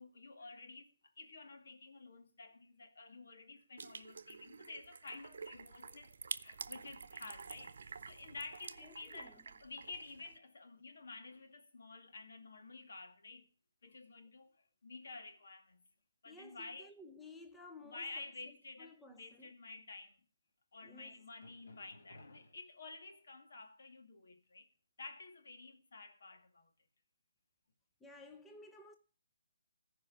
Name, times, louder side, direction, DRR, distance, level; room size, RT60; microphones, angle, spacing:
voice 1, 0.0-13.5 13.8-14.6 14.8-15.8 16.2-16.9 17.8-20.2 20.7-24.7 25.0-26.7, left 3 dB, 70° left, 2.3 m, -51 dB
sound 1, 3.8-10.4, right 5 dB, 65° right, 0.8 m, -49 dB
voice 2, 8.8-9.5 16.2-19.5 20.8-21.2 28.0-29.0, left 2 dB, 5° left, 0.7 m, -56 dB
14.5 x 5.2 x 8.4 m
hypercardioid pair, 160°, 0 cm